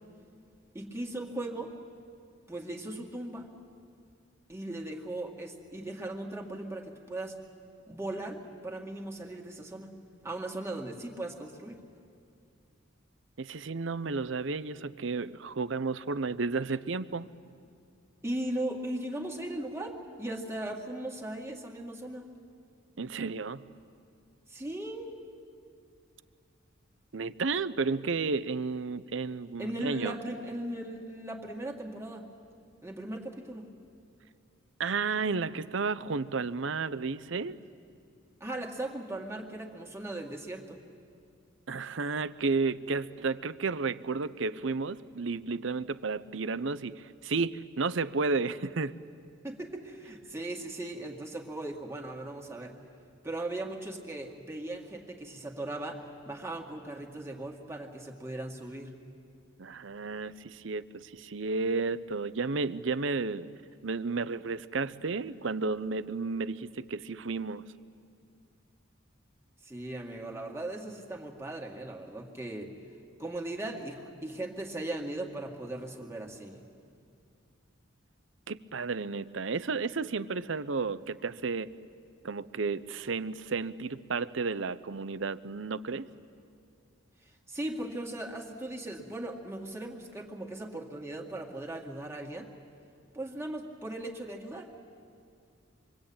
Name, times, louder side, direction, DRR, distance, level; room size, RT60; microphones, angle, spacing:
voice 1, 0.7-1.7 2.5-3.5 4.5-7.4 7.9-9.9 10.2-11.8 18.2-22.3 24.5-25.1 29.6-32.3 32.8-33.7 38.4-40.8 49.4-52.8 53.2-58.9 69.6-72.7 73.2-76.7 87.2-92.5 93.1-94.7, right 1 dB, 15° right, 0 dB, 2.1 m, -38 dB
voice 2, 13.4-17.3 23.0-23.6 27.1-30.2 34.8-37.6 41.7-49.0 59.6-63.5 63.8-67.6 78.5-81.7 82.2-86.1, right 4 dB, 70° right, 15 dB, 0.7 m, -32 dB
27.0 x 23.5 x 8.8 m, 2.4 s
head